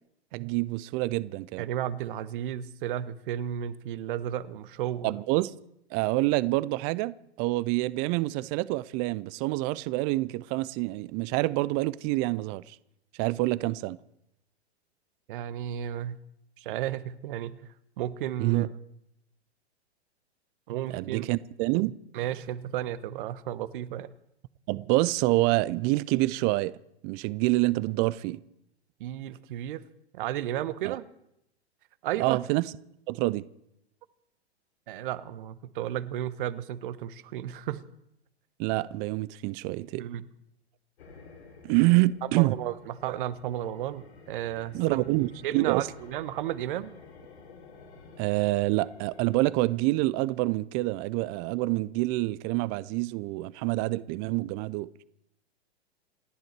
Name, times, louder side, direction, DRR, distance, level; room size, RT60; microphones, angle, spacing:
voice 1, 0.3-1.7 5.0-5.5 5.9-12.8 13.2-14.0 18.4-18.7 20.9-22.0 24.7-26.7 27.0-28.4 30.8-31.0 32.2-32.7 33.1-33.4 38.6-40.0 41.6-42.6 44.7-45.9 48.2-54.9, right 20 dB, 30° right, 0.5 m, -27 dB
voice 2, 1.6-5.1 15.3-16.2 16.6-18.7 20.7-21.3 22.1-24.1 29.0-29.8 30.1-31.0 32.0-32.4 34.9-37.8 40.0-40.2 42.3-45.0 45.4-46.9, right 11 dB, 50° right, 1.2 m, -33 dB
sound 1, 41.0-49.7, left 4 dB, 70° left, 6.5 m, -51 dB
29.0 x 10.5 x 4.6 m
figure-of-eight pair, 110°, 33 cm